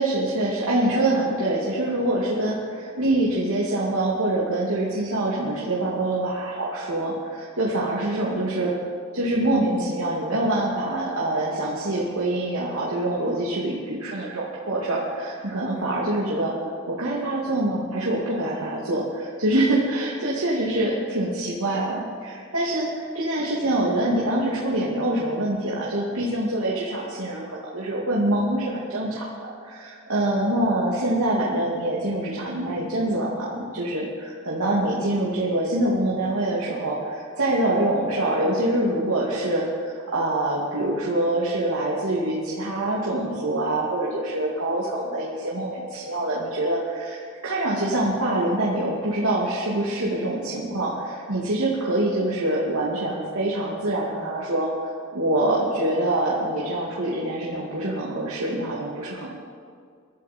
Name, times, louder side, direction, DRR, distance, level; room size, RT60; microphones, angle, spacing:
voice 1, 0.0-8.7 9.1-16.5 16.9-29.3 29.6-54.7 55.1-59.3, right 1 dB, 80° right, -5 dB, 2.4 m, -25 dB
22.5 x 13.0 x 4.4 m, 2.2 s
head